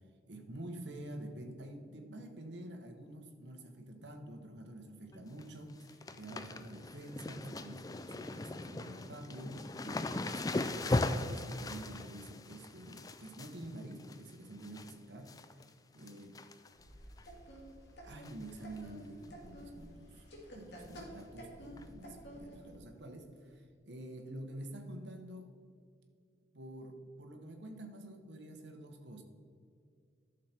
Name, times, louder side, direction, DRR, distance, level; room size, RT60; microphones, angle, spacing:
voice 1, 0.3-15.7 15.9-16.4 18.0-20.2 20.5-25.5 26.5-29.2, right 1 dB, 75° right, 4 dB, 1.1 m, -48 dB
sound 1, 5.1-5.4 5.7-14.9 15.3-15.7 16.0-16.8 17.2-17.3 18.2-18.5 18.8-18.9 19.2-19.3 20.9-21.0 21.8-21.9, left 2 dB, 20° left, 0.3 m, -39 dB
sound 2, 16.8-22.7, equal, 70° left, 2.1 m, -51 dB
11.5 x 6.5 x 4.3 m, 2.4 s
head